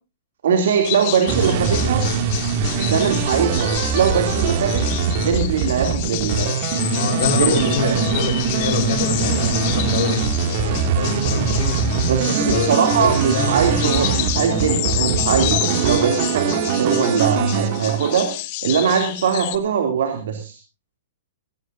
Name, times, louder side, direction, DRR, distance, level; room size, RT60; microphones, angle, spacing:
voice 1, 0.4-2.0 2.6-4.9 5.2-6.6 7.4-8.0 12.1-20.6, right 7 dB, 75° right, 5 dB, 2.9 m, -21 dB
sound 1, 0.8-19.6, left 18 dB, 45° left, 1.1 m, -29 dB
sound 2, 1.3-18.4, right 5 dB, 50° right, 2.4 m, -22 dB
voice 2, 6.9-12.0 12.3-13.6 16.9-17.2, left 6 dB, 70° left, 5 dB, 4.8 m, -27 dB
19.0 x 17.5 x 2.7 m, 0.31 s
hypercardioid pair, 145°, 0 cm